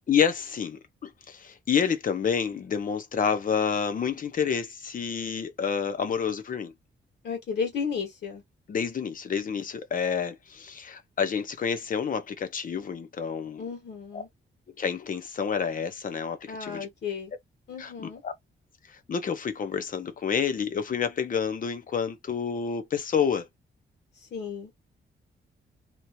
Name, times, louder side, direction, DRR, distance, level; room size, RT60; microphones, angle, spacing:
voice 1, 0.1-6.7 8.7-13.6 14.1-14.2 14.8-16.9 17.8-18.3 18.9-23.5, left 7 dB, 45° left, 0.8 m, -29 dB
voice 2, 7.2-8.4 13.6-14.3 16.5-17.3 17.7-18.2 24.3-24.7, left 6 dB, 60° left, 1.6 m, -33 dB
3.0 x 2.5 x 2.7 m
wide cardioid pair, 160°, 19 cm